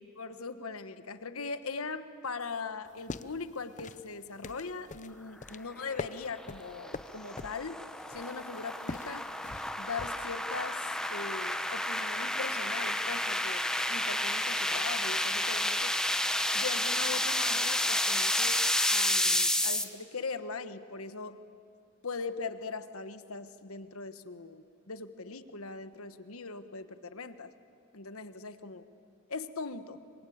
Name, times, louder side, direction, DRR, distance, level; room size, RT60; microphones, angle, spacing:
voice 1, 0.0-7.8 8.1-9.3 9.8-13.6 13.9-15.9 16.5-18.6 18.9-21.4 22.0-27.5 27.9-28.9 29.3-30.0, left 4 dB, 85° left, 10 dB, 1.4 m, -40 dB
sound 1, 2.9-10.4, left 3 dB, 35° left, 0.6 m, -44 dB
sound 2, 5.9-19.8, left 1 dB, 5° left, 1.1 m, -30 dB
26.5 x 25.5 x 8.7 m, 2.4 s
head